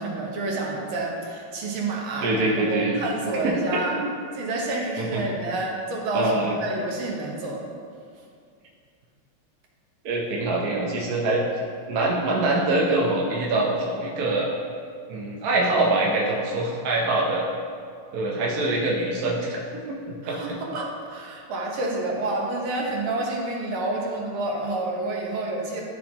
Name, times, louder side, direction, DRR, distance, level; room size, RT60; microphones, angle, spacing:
voice 1, 0.0-4.0 4.4-7.6 20.2-25.8, right 2 dB, 75° right, -2 dB, 2.0 m, -29 dB
voice 2, 2.2-3.0 3.4-3.6 5.0-5.2 6.1-6.5 10.0-11.4 11.9-14.5 15.1-17.4 18.1-20.4, right 2 dB, 60° right, -3 dB, 1.1 m, -24 dB
12.5 x 4.3 x 2.9 m, 2.3 s
omnidirectional pair, 2.3 m